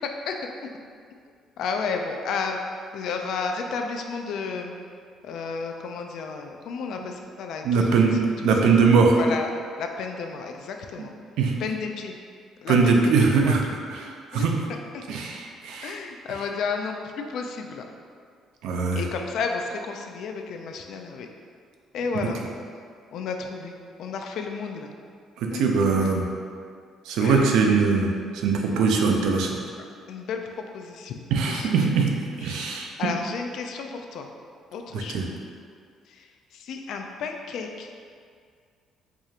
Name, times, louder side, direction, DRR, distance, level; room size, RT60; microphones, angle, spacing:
voice 1, 1.6-2.6 2.9-4.8 5.2-8.7 9.1-9.5 9.8-11.1 11.6-12.1 12.6-13.6 14.3-14.6 15.8-17.8 19.0-21.3 21.9-22.4 23.1-23.7 24.0-24.9 25.5-25.6 26.0-26.1 27.2-27.6 30.1-30.4 30.7-31.7 32.4-34.3 34.7-35.2 36.2-36.3 36.5-38.0, left 5 dB, 60° left, 4 dB, 0.3 m, -32 dB
voice 2, 7.6-8.2 8.4-9.2 11.4-11.5 12.7-14.5 15.1-16.0 18.6-19.0 25.4-26.2 27.1-28.1 28.3-29.5 31.3-32.1 32.4-32.9 34.9-35.3, right 4 dB, 80° right, 1 dB, 0.4 m, -21 dB
4.7 x 2.4 x 2.8 m, 2.1 s
cardioid pair, 165°, 0 cm